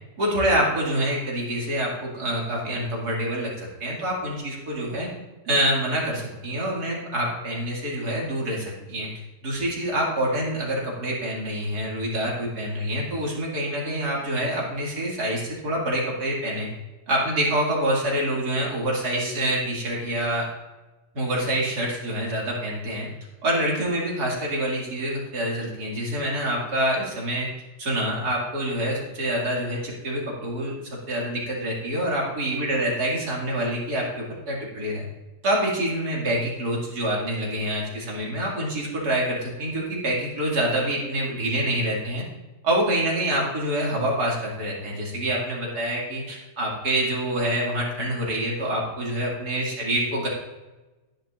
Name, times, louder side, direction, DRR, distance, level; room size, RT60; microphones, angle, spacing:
voice 1, 0.2-5.1 5.4-9.1 9.4-16.7 17.1-20.4 21.1-23.1 23.4-27.5 27.8-35.0 35.4-42.2 42.6-50.3, right 1 dB, 75° right, -4 dB, 3.1 m, -26 dB
11.5 x 10.0 x 2.6 m, 1.1 s
omnidirectional pair, 1.7 m